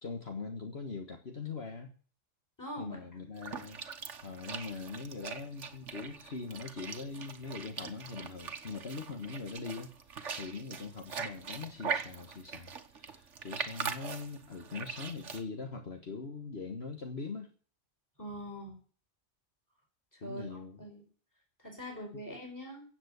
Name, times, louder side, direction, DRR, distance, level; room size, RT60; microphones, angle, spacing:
voice 1, 0.0-1.9 2.8-3.8 4.2-17.5 20.2-20.8 22.1-22.2, left 4 dB, 55° left, 5 dB, 1.7 m, -42 dB
voice 2, 2.6-3.0 18.2-18.8 20.2-21.0 21.6-22.8, equal, 15° left, 0 dB, 5.2 m, -43 dB
sound 1, 3.4-15.4, right 6 dB, 70° right, 1.6 m, -41 dB
16.0 x 7.8 x 8.1 m, 0.42 s
omnidirectional pair, 1.3 m